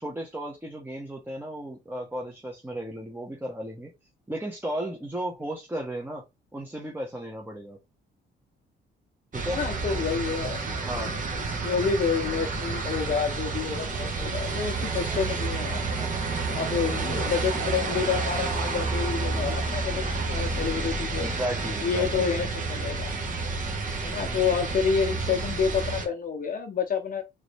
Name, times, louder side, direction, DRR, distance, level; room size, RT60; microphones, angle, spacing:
voice 1, 0.0-3.9 4.3-6.2 6.5-7.8 9.3-9.6 10.8-11.2 15.0-15.3 21.2-22.3, right 1 dB, 10° right, 1.2 m, -34 dB
sound 1, 9.3-26.0, right 3 dB, 40° right, 1.5 m, -30 dB
voice 2, 9.5-10.6 11.0-16.1 16.5-21.3 21.8-23.3 24.0-27.2, left 6 dB, 45° left, 0.7 m, -29 dB
3.9 x 3.1 x 3.4 m
cardioid pair, 90°, 20 cm